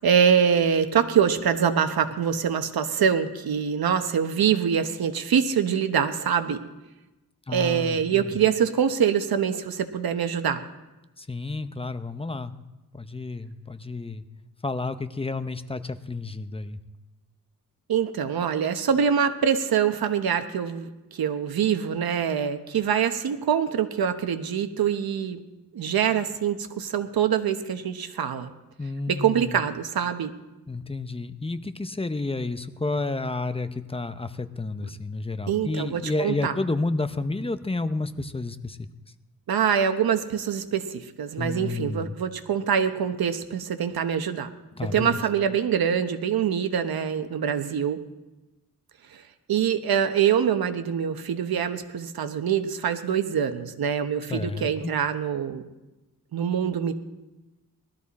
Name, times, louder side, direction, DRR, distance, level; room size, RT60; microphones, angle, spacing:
voice 1, 0.0-6.6 7.5-10.6 17.9-25.4 25.7-28.5 29.1-30.3 35.5-36.5 39.5-44.5 44.8-48.0 49.5-55.6 56.3-56.9, right 8 dB, 85° right, 8 dB, 1.1 m, -24 dB
voice 2, 7.5-8.2 11.2-12.5 12.9-14.2 14.6-16.8 28.8-29.6 30.7-38.9 41.4-42.1 44.8-45.2 54.3-54.9, left 3 dB, 15° left, 10 dB, 0.7 m, -31 dB
19.5 x 13.5 x 4.2 m, 1.0 s
wide cardioid pair, 105°, 35 cm